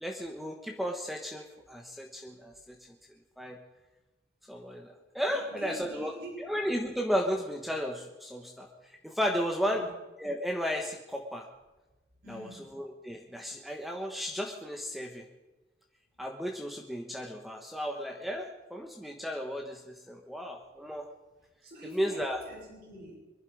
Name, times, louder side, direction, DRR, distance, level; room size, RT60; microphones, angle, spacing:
voice 1, 0.0-2.8 3.4-3.6 4.5-6.1 6.4-8.7 9.0-9.9 10.2-11.5 12.3-15.2 16.2-21.1 21.9-22.4, equal, ahead, 2 dB, 1.2 m, -34 dB
voice 2, 5.3-6.5 9.6-9.9 12.2-12.6 21.6-23.2, equal, 55° right, 0 dB, 6.5 m, -45 dB
24.0 x 11.5 x 5.0 m, 1.1 s
head